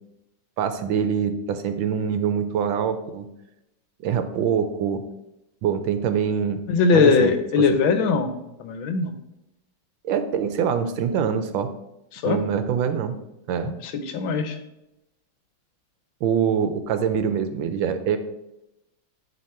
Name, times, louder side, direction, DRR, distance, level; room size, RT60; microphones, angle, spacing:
voice 1, 0.6-3.3 4.0-5.0 5.6-6.6 6.9-7.6 10.0-11.7 12.2-13.2 13.5-13.7 16.2-18.2, right 7 dB, 80° right, 9 dB, 1.4 m, -24 dB
voice 2, 6.7-8.3 8.6-9.1 12.1-12.4 13.8-14.6, left 5 dB, 80° left, 8 dB, 1.5 m, -20 dB
10.5 x 3.6 x 4.3 m, 0.90 s
omnidirectional pair, 2.2 m